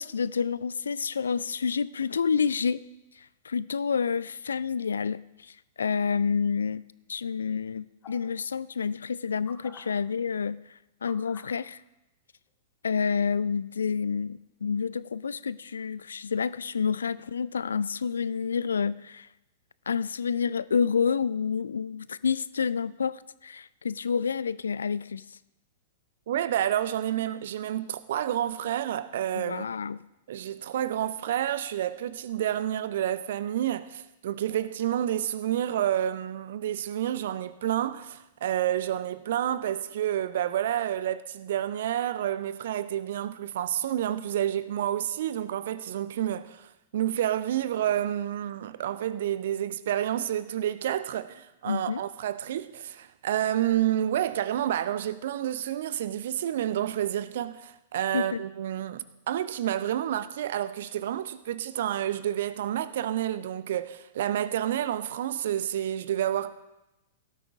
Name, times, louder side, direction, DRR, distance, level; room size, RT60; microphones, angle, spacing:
voice 1, 0.0-2.8 3.4-5.5 5.8-6.8 7.1-10.6 11.0-11.8 12.8-19.3 19.9-25.2 29.4-30.0 51.7-52.0 58.1-58.4, left 6 dB, 70° left, 0.4 m, -29 dB
sound 1, 8.0-8.3 9.5-9.8 11.0-11.5 12.5-12.6, left 7 dB, 35° left, 2.0 m, -48 dB
voice 2, 26.3-29.7 30.3-66.5, right 11 dB, 55° right, 0.6 m, -29 dB
17.5 x 12.5 x 3.6 m
figure-of-eight pair, 100°, 0 cm